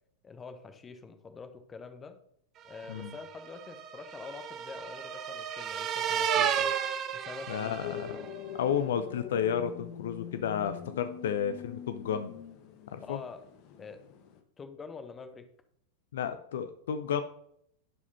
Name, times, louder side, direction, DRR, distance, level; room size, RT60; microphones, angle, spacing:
voice 1, 0.2-2.2 2.6-6.8 7.1-8.3 13.0-13.4 13.8-14.0 14.6-15.5, left 5 dB, 20° left, 8 dB, 1.0 m, -46 dB
sound 1, 2.8-8.3, right 8 dB, 30° right, 0.7 m, -33 dB
voice 2, 7.5-8.0 8.6-12.3 12.9-13.2 16.1-17.2, left 8 dB, 60° left, 10 dB, 0.5 m, -32 dB
sound 2, 7.8-14.4, left 8 dB, 40° left, 1.0 m, -44 dB
11.0 x 4.9 x 4.1 m, 0.69 s
figure-of-eight pair, 90°, 0 cm